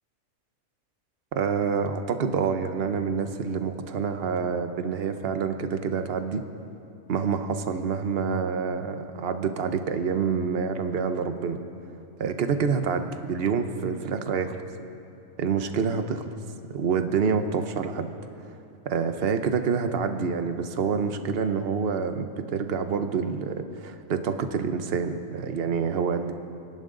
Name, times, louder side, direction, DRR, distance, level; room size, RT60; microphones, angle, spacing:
voice 1, 1.3-6.4 7.1-11.6 12.2-14.6 15.4-16.3 16.7-18.1 18.9-26.3, right 6 dB, 45° right, 8 dB, 1.0 m, -27 dB
29.5 x 11.0 x 3.9 m, 2.7 s
omnidirectional pair, 1.6 m